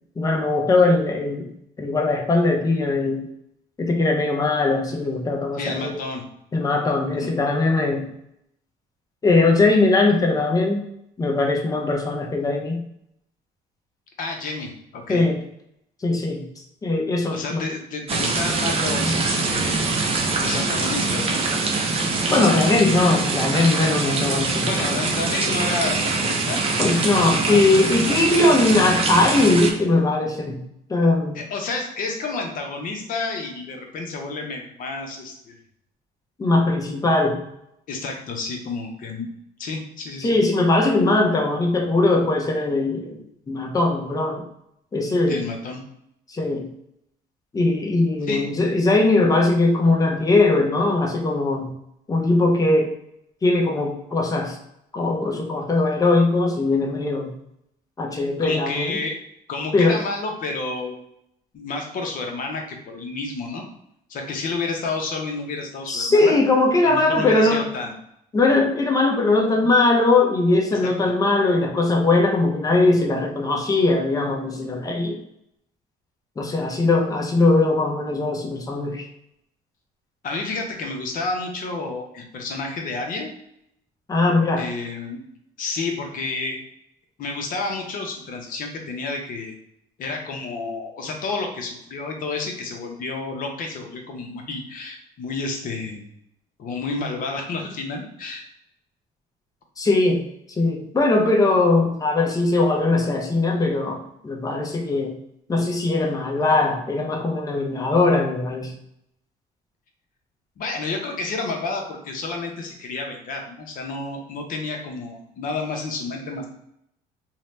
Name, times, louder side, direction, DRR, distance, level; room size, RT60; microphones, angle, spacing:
voice 1, 0.2-1.5 1.8-3.3 3.8-6.0 6.5-8.1 9.2-10.8 11.2-12.8 15.1-15.4 16.0-17.6 22.3-25.0 26.8-30.6 30.9-31.4 36.4-37.4 40.2-43.2 43.5-44.4 44.9-45.4 46.3-46.7 47.5-51.7 52.1-52.9 53.4-54.6 54.9-57.3 58.0-59.0 59.7-60.0 65.9-67.6 68.3-75.2 76.4-79.0 84.1-84.7 99.8-105.2 105.5-108.7, left 2 dB, 20° left, 2 dB, 0.6 m, -20 dB
voice 2, 5.6-6.2 7.1-7.3 14.2-15.3 17.3-19.9 20.4-21.5 24.7-26.6 27.1-28.2 31.3-35.5 37.9-39.3 39.6-40.4 45.3-45.8 48.3-48.4 58.4-59.2 59.5-61.0 61.5-63.6 64.1-66.3 66.8-67.9 70.8-70.9 80.2-83.3 84.6-85.2 85.6-86.6 87.2-89.5 90.0-96.0 96.6-98.5 110.6-116.5, left 3 dB, 55° left, 2 dB, 0.7 m, -30 dB
sound 1, 18.1-29.7, right 3 dB, 35° right, 0.5 m, -23 dB
2.7 x 2.1 x 3.2 m, 0.77 s
cardioid pair, 110°, 17 cm